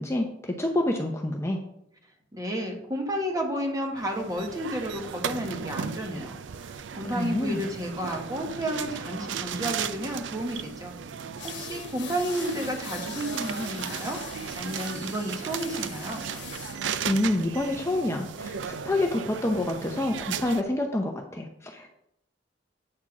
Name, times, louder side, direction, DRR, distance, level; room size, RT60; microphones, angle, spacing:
voice 1, 0.0-1.6 7.0-7.6 17.0-21.9, left 1 dB, 15° left, 2 dB, 0.7 m, -27 dB
voice 2, 2.3-14.2 14.5-16.2, equal, 20° right, 2 dB, 1.4 m, -32 dB
sound 1, 4.0-20.6, right 7 dB, 85° right, 0.5 m, -36 dB
sound 2, 11.4-16.8, left 8 dB, 75° left, 1.1 m, -43 dB
8.6 x 4.4 x 6.0 m, 0.78 s
head